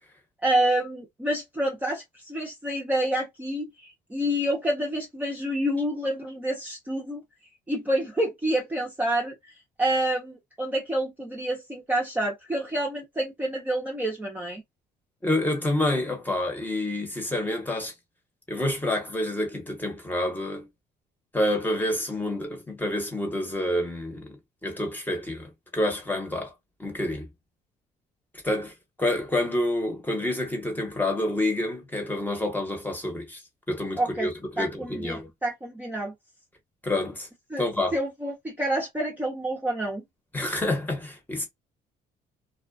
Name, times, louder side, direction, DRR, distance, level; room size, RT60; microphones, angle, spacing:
voice 1, 0.4-7.2 7.7-9.3 9.8-14.6 34.0-34.3 34.6-36.1 37.5-37.6 37.9-40.0, right 1 dB, 10° right, 0.7 m, -28 dB
voice 2, 15.2-17.9 18.5-20.7 21.3-26.5 26.8-27.3 28.4-28.7 29.0-33.4 33.7-35.3 36.8-37.3 37.6-37.9 40.3-41.5, left 1 dB, 10° left, 1.0 m, -28 dB
2.3 x 2.3 x 2.3 m
cardioid pair, 110°, 17 cm